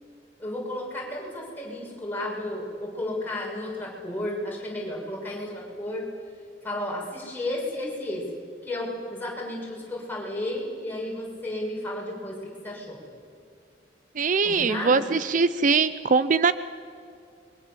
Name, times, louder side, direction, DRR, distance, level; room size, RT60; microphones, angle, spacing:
voice 1, 0.4-6.1 6.6-8.2 8.6-13.0 14.4-15.1, left 1 dB, 10° left, -3 dB, 6.9 m, -33 dB
voice 2, 14.2-16.5, right 4 dB, 45° right, 14 dB, 0.6 m, -22 dB
28.5 x 22.5 x 7.6 m, 2.5 s
head